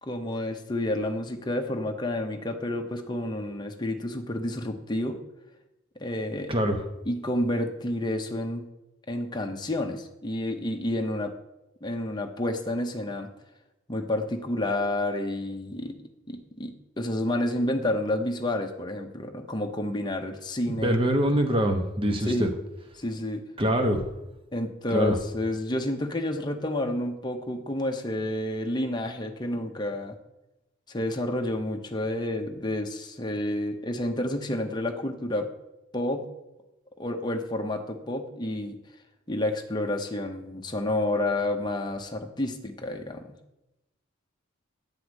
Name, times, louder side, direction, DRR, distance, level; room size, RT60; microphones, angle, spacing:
voice 1, 0.0-5.2 6.0-6.5 7.1-8.6 9.1-11.3 11.8-13.3 13.9-16.0 16.3-21.0 22.3-22.5 23.0-23.4 24.5-30.2 30.9-35.5 35.9-36.3 37.0-38.8 39.3-43.4, left 1 dB, 20° left, 4 dB, 0.9 m, -30 dB
voice 2, 6.5-6.8 20.7-22.5 23.6-24.0 24.9-25.2, equal, 25° right, 5 dB, 1.1 m, -24 dB
10.5 x 4.8 x 8.1 m, 0.94 s
head